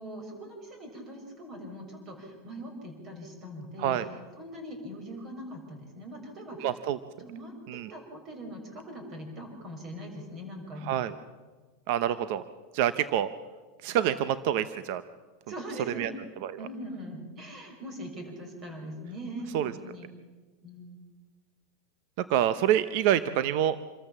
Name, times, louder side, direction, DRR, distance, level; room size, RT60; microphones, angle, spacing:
voice 1, 0.0-4.0 4.4-6.8 7.2-11.0 15.5-16.2 16.6-20.1 20.6-21.0, equal, 30° right, 3 dB, 6.2 m, -41 dB
voice 2, 6.6-7.0 7.7-7.9 10.9-11.1 11.9-12.4 12.7-13.3 13.8-15.0 16.0-16.1 16.4-16.5 19.5-19.7 22.2-23.8, right 11 dB, 60° right, 13 dB, 0.8 m, -26 dB
26.5 x 13.5 x 7.4 m, 1.3 s
supercardioid pair, 140°, 0 cm